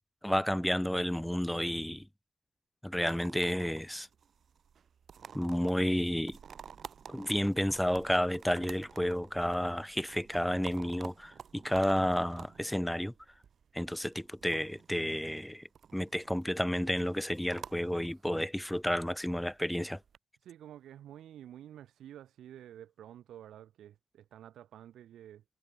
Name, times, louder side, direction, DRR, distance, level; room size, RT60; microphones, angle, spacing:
voice 1, 0.2-2.1 2.8-4.1 5.3-6.4 7.1-13.1 13.7-20.0, equal, 5° left, 0.4 m, -31 dB
sound 1, 3.0-20.2, right 7 dB, 50° right, 6.1 m, -52 dB
voice 2, 20.4-25.4, right 11 dB, 75° right, 1.3 m, -50 dB
cardioid pair, 90°, 0 cm